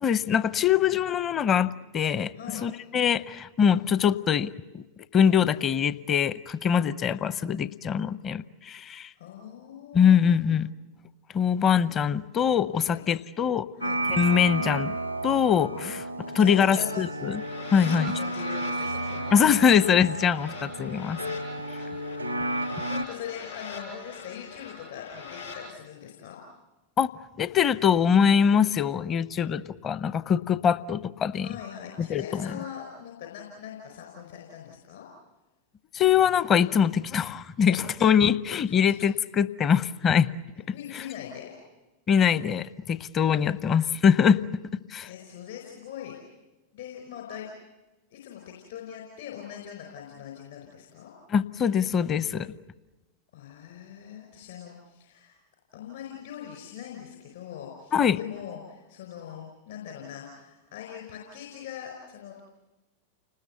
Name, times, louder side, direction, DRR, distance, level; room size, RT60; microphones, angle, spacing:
voice 1, 0.0-2.3 2.6-4.8 5.1-9.1 9.9-10.7 11.3-13.7 14.1-15.0 15.2-16.0 16.3-17.4 17.7-18.1 19.3-21.2 27.0-27.1 27.4-31.5 32.0-32.5 35.9-40.3 42.1-44.4 44.9-45.1 51.3-52.5 57.9-58.2, left 7 dB, 25° left, 16 dB, 0.7 m, -23 dB
voice 2, 2.3-2.7 9.2-10.6 12.8-13.0 13.8-14.0 16.2-17.1 17.8-19.5 22.8-26.4 31.4-35.0 37.7-37.8 38.8-39.0 40.6-41.5 45.0-46.1 46.7-47.5 48.1-51.1 53.3-55.4 55.7-62.4, left 9 dB, 60° left, 1 dB, 4.9 m, -41 dB
sound 1, 13.8-23.0, right 1 dB, 90° right, 0.8 m, -32 dB
sound 2, 17.1-25.6, left 4 dB, 85° left, 7.6 m, -43 dB
30.0 x 20.0 x 8.0 m, 1.1 s
figure-of-eight pair, 90°, 0 cm